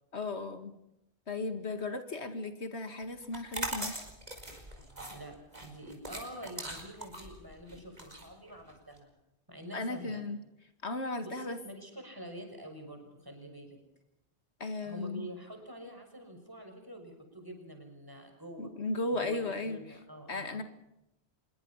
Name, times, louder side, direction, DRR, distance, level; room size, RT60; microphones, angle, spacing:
voice 1, 0.1-0.7 1.3-4.0 9.7-10.4 10.8-11.6 14.6-15.3 18.6-20.0 20.3-20.6, left 2 dB, 80° left, 9 dB, 2.3 m, -36 dB
Eating Chips, 3.2-9.0, right 1 dB, 40° right, 5.0 m, -41 dB
voice 2, 5.1-9.1 9.5-10.2 11.2-13.8 14.8-18.7 19.2-20.6, equal, 20° right, 4 dB, 6.4 m, -46 dB
26.5 x 22.5 x 5.7 m, 0.86 s
omnidirectional pair, 1.1 m